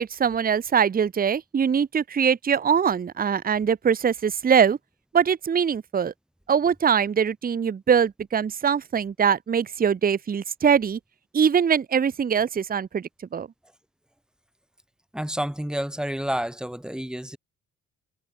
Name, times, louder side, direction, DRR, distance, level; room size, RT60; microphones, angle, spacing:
voice 1, 0.0-4.8 5.1-6.1 6.5-11.0 11.3-13.5, right 7 dB, 30° right, 0.8 m, -22 dB
voice 2, 15.1-17.4, equal, ahead, 3.8 m, -29 dB
cardioid pair, 90°, 30 cm